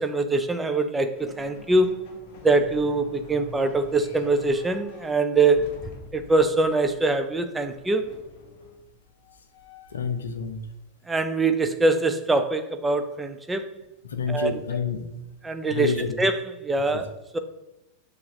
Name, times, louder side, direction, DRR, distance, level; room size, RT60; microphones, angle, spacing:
voice 1, 0.0-2.0 2.4-5.7 6.1-8.0 11.1-13.7 14.3-14.6 15.4-17.4, right 3 dB, 10° right, 8 dB, 0.4 m, -23 dB
sound 1, 1.2-10.2, left 4 dB, 45° left, 0.9 m, -47 dB
voice 2, 9.9-10.6 14.0-15.0 15.7-16.1 16.9-17.0, left 6 dB, 70° left, 7 dB, 0.5 m, -28 dB
6.9 x 2.4 x 3.1 m, 0.96 s
figure-of-eight pair, 90°, 0 cm